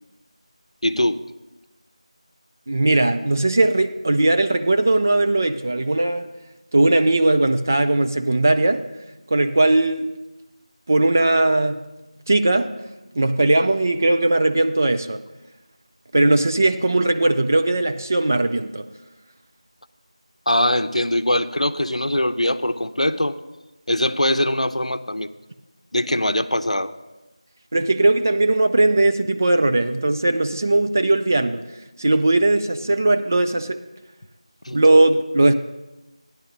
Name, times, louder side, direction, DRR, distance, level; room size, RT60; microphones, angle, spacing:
voice 1, 0.8-1.2 20.5-23.4 23.9-25.3 25.9-26.9 34.6-34.8, left 1 dB, 80° left, 10 dB, 0.7 m, -22 dB
voice 2, 2.7-6.3 6.7-8.8 9.3-10.1 10.9-11.9 12.3-12.7 13.2-15.2 16.1-18.9 27.7-31.6 32.0-33.8 34.7-35.5, right 2 dB, 25° right, 8 dB, 0.4 m, -18 dB
15.0 x 10.5 x 4.0 m, 1.1 s
figure-of-eight pair, 170°, 3 cm